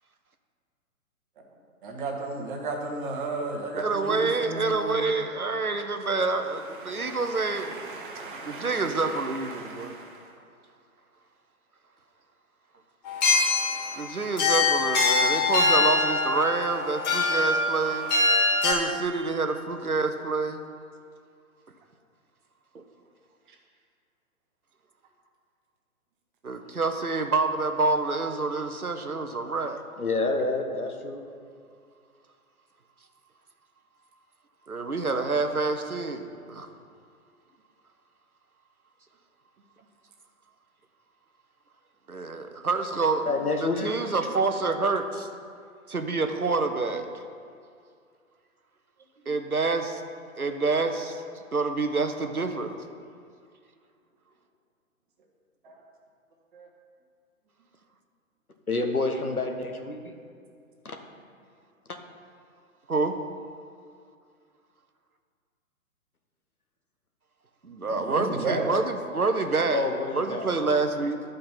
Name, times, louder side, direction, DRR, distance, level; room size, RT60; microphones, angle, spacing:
voice 1, 1.8-5.1 6.7-10.3 49.2-49.3 55.6-55.8 56.5-56.7 67.9-68.7, right 3 dB, 35° right, 1 dB, 1.5 m, -35 dB
voice 2, 3.7-7.9 8.4-10.0 14.0-18.1 18.6-20.6 22.7-22.8 26.4-29.8 34.7-36.7 42.1-43.3 43.6-45.3 45.9-47.2 49.3-50.0 50.4-51.2 51.5-52.8 62.9-63.1 67.6-69.8 70.1-71.2, right 3 dB, 90° right, 6 dB, 1.0 m, -27 dB
sound 1, 13.0-18.7, left 3 dB, 30° left, 2.0 m, -23 dB
voice 3, 30.0-31.2 43.3-43.9 58.7-60.1 60.8-61.0 61.9-62.0 69.7-70.6, left 3 dB, 85° left, 4 dB, 1.3 m, -28 dB
11.5 x 5.3 x 5.9 m, 2.3 s
figure-of-eight pair, 130°, 43 cm